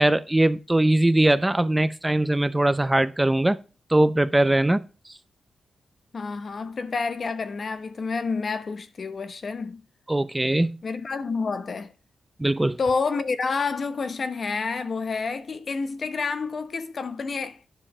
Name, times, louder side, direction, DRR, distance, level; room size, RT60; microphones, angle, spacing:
voice 1, 0.0-3.6 3.9-4.8 10.1-10.8 12.4-12.8, right 1 dB, 15° right, 0.6 m, -21 dB
voice 2, 6.1-9.8 10.8-11.9 12.8-17.6, left 4 dB, 55° left, 1.0 m, -29 dB
10.0 x 5.2 x 6.0 m
cardioid pair, 70°, 0 cm